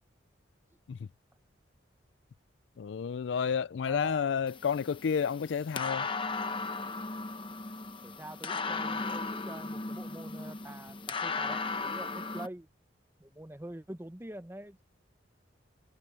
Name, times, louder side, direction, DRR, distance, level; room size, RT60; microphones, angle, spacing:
voice 1, 2.8-6.1, left 6 dB, 70° left, 0.4 m, -30 dB
voice 2, 3.8-4.3 8.0-12.7 13.2-14.8, right 1 dB, 10° right, 0.9 m, -45 dB
sound 1, 4.5-12.5, left 4 dB, 25° left, 0.9 m, -36 dB
head